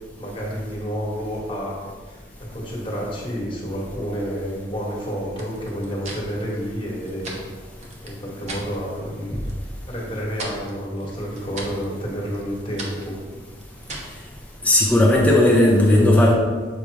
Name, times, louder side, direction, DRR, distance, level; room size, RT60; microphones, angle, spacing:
voice 1, 0.2-1.8 2.1-7.3 8.0-9.4 9.8-13.2, equal, 30° left, -4 dB, 1.4 m, -30 dB
sound 1, 5.4-8.7 9.1-9.6 9.9-14.2, right 2 dB, 40° right, 0.9 m, -38 dB
voice 2, 14.6-16.3, left 1 dB, 10° left, -3 dB, 0.7 m, -15 dB
7.1 x 2.9 x 4.7 m, 1.5 s
head